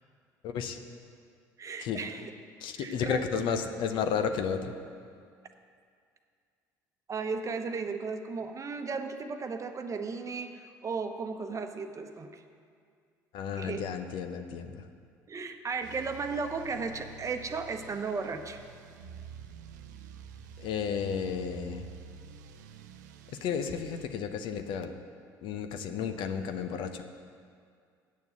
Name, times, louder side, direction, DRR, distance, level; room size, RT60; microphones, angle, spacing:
voice 1, 0.4-0.8 1.8-2.0 2.6-4.7 13.3-14.8 20.6-21.9 23.3-24.9 25.4-27.0, left 7 dB, 60° left, 8 dB, 0.7 m, -32 dB
voice 2, 1.6-2.3 2.8-3.4 7.1-12.4 13.6-13.8 15.3-18.6, right 4 dB, 35° right, 6 dB, 0.9 m, -35 dB
sound 1, 15.8-24.1, right 6 dB, 80° right, 0.5 m, -48 dB
8.3 x 6.9 x 7.9 m, 2.2 s
hypercardioid pair, 60°, 9 cm